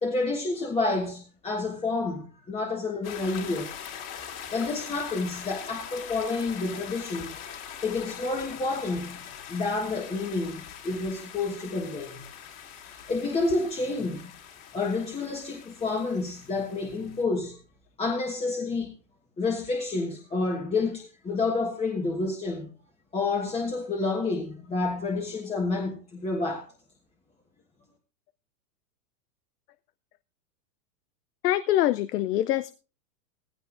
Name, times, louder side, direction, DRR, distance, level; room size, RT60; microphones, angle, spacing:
voice 1, 0.0-3.7 4.5-7.3 7.8-9.2 9.5-12.2 13.1-14.3 14.7-17.6 18.0-18.9 19.4-22.7 23.1-26.7, left 3 dB, 15° left, 1.3 m, -29 dB
sound 1, 3.0-17.2, left 8 dB, 30° left, 2.4 m, -42 dB
voice 2, 31.4-32.7, left 13 dB, 70° left, 0.7 m, -24 dB
16.5 x 15.5 x 2.5 m
hypercardioid pair, 140°, 49 cm